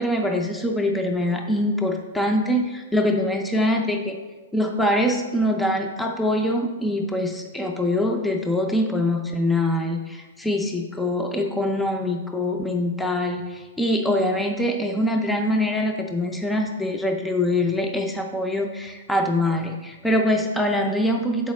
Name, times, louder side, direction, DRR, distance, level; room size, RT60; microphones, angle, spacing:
voice 1, 0.0-4.2 4.5-21.5, left 1 dB, 5° left, 3 dB, 0.4 m, -24 dB
6.5 x 4.8 x 3.1 m, 1.3 s
hypercardioid pair, 155°, 0 cm